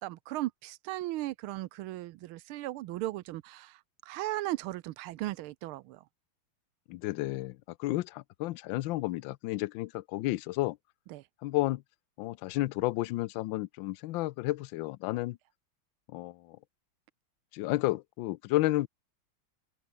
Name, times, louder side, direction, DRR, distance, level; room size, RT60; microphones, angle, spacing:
voice 1, 0.0-6.0 11.1-11.3, right 16 dB, 80° right, 1.5 m, -37 dB
voice 2, 6.9-10.8 11.4-11.8 12.2-15.4 16.1-16.6 17.5-18.9, left 18 dB, 75° left, 1.3 m, -32 dB
omnidirectional pair, 2.3 m